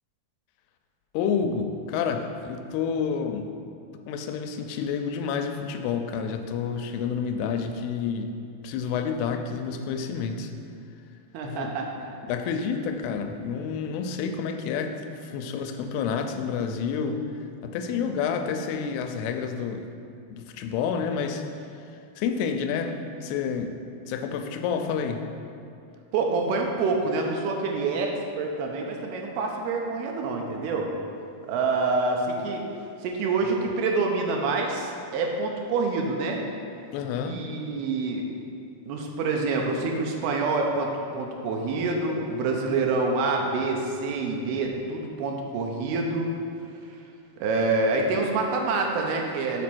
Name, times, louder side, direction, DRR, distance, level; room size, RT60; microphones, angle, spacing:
voice 1, 1.1-3.5 4.1-8.3 8.6-10.5 11.4-11.7 12.3-15.0 15.2-17.2 17.6-19.9 20.3-21.4 22.2-23.7 24.1-25.2 36.9-37.4, left 6 dB, 90° left, 5 dB, 2.6 m, -29 dB
voice 2, 11.3-12.1 26.1-30.9 31.5-32.7 33.0-36.4 37.3-38.3 38.9-46.3 47.4-49.6, right 3 dB, 85° right, 1 dB, 2.6 m, -27 dB
7.0 x 4.2 x 6.1 m, 2.5 s
omnidirectional pair, 4.5 m